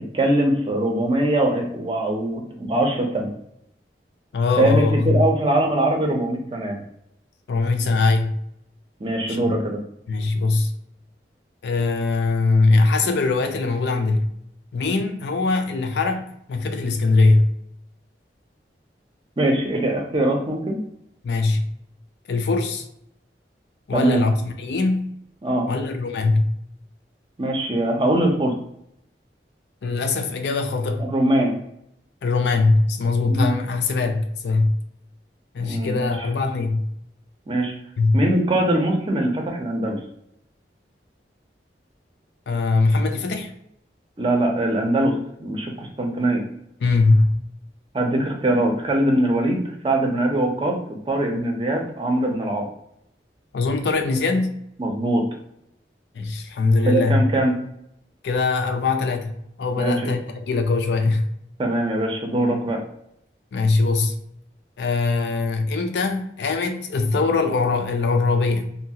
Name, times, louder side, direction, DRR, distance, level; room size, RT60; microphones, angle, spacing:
voice 1, 0.0-3.3 4.6-6.8 9.0-9.8 19.4-20.8 23.9-24.2 25.4-25.7 27.4-28.5 31.0-31.5 33.3-33.5 35.6-36.3 37.5-37.7 38.1-40.0 44.2-46.4 47.9-52.7 54.8-55.2 56.8-57.5 59.8-60.1 61.6-62.8, right 1 dB, 30° right, 2 dB, 0.5 m, -22 dB
voice 2, 4.3-5.2 7.5-8.4 9.3-9.5 10.1-10.7 11.6-14.3 14.7-17.5 21.2-21.6 22.3-22.8 23.9-25.1 25.7-26.5 29.8-31.1 32.2-34.7 35.5-36.8 38.0-38.2 42.5-43.5 46.8-47.4 53.5-54.5 56.2-57.2 58.2-61.2 63.5-64.1 64.8-68.7, left 3 dB, 75° left, 6 dB, 0.4 m, -21 dB
2.7 x 2.4 x 2.8 m, 0.76 s
head